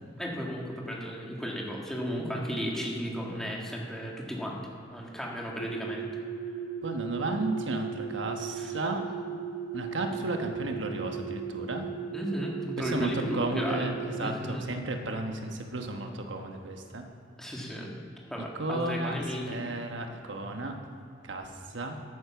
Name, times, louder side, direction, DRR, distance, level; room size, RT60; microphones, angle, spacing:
voice 1, 0.2-4.6 4.9-6.1 8.5-8.8 12.1-13.9 14.2-14.7 17.4-17.9 18.3-19.7, equal, ahead, -3 dB, 2.0 m, -34 dB
sound 1, 5.6-14.2, right 7 dB, 60° left, 1.5 m, -37 dB
voice 2, 6.8-9.0 9.7-11.9 12.8-17.0 18.6-19.1 19.5-20.7 21.2-22.0, right 2 dB, 75° right, 4 dB, 1.2 m, -33 dB
13.5 x 9.4 x 5.9 m, 2.8 s
head